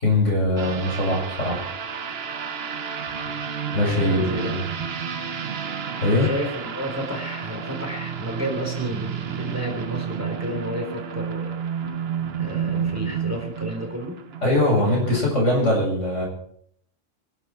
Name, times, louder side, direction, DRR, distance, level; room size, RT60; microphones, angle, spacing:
voice 1, 0.0-1.6 3.7-4.6 6.0-6.3 14.4-16.3, left 1 dB, 75° left, -2 dB, 8.6 m, -21 dB
sound 1, 0.6-15.2, right 7 dB, 55° right, 1.2 m, -31 dB
voice 2, 3.8-4.5 6.2-11.6 12.3-14.2, equal, 10° right, 2 dB, 4.0 m, -32 dB
26.5 x 12.0 x 4.6 m, 0.65 s
omnidirectional pair, 1.3 m